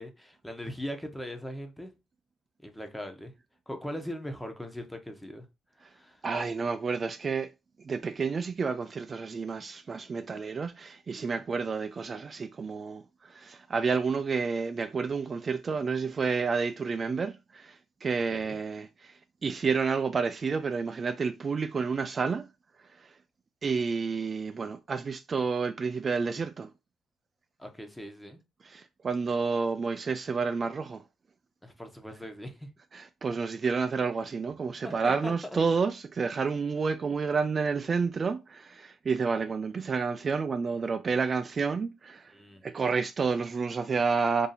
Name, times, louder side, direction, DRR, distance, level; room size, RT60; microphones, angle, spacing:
voice 1, 0.0-1.9 2.6-3.3 3.7-5.5 5.9-6.2 18.3-18.6 27.6-28.4 31.6-32.7 34.8-35.3 42.3-42.6, equal, 5° left, 0.8 m, -40 dB
voice 2, 6.2-7.5 7.8-22.5 22.8-23.1 23.6-26.7 28.6-31.0 32.9-42.3 42.6-44.5, right 5 dB, 40° right, 0.3 m, -30 dB
2.7 x 2.7 x 3.9 m
cardioid pair, 90°, 0 cm